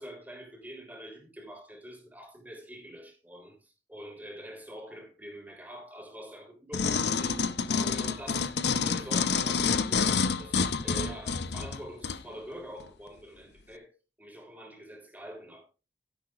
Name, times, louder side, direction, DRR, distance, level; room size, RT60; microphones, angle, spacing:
voice 1, 0.0-7.4 7.7-13.9 14.2-15.7, equal, 10° right, 3.5 m, -45 dB
sound 1, 6.7-12.2 12.8-12.9, left 5 dB, 70° left, 0.7 m, -28 dB
12.5 x 11.0 x 2.5 m
head